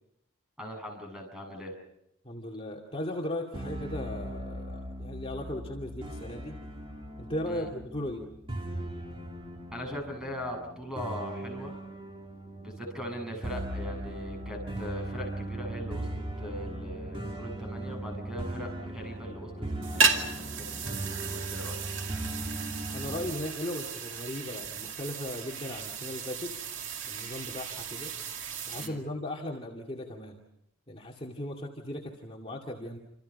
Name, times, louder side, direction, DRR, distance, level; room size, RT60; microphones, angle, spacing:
voice 1, 0.6-1.7 7.5-7.7 9.7-11.8 12.6-21.8 28.8-29.0, equal, 5° right, 2 dB, 7.5 m, -40 dB
voice 2, 2.2-6.6 7.2-8.3 22.9-26.6 27.1-28.1 28.7-30.4 30.9-33.0, left 1 dB, 30° left, -1 dB, 2.5 m, -37 dB
sound 1, 3.5-23.3, right 1 dB, 25° right, 2.8 m, -38 dB
sound 2, 19.8-28.9, right 5 dB, 65° right, 2.5 m, -34 dB
28.5 x 28.0 x 5.5 m, 0.79 s
head